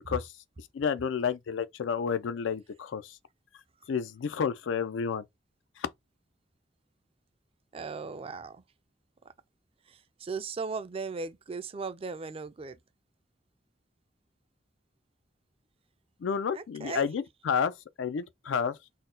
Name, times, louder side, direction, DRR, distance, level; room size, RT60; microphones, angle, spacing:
voice 1, 0.7-3.2 3.9-5.2 5.8-5.9 16.2-18.8, left 6 dB, 85° left, 0.4 m, -30 dB
voice 2, 7.7-8.6 9.9-12.8 16.5-17.1, right 4 dB, 30° right, 0.4 m, -37 dB
4.0 x 2.1 x 3.7 m
head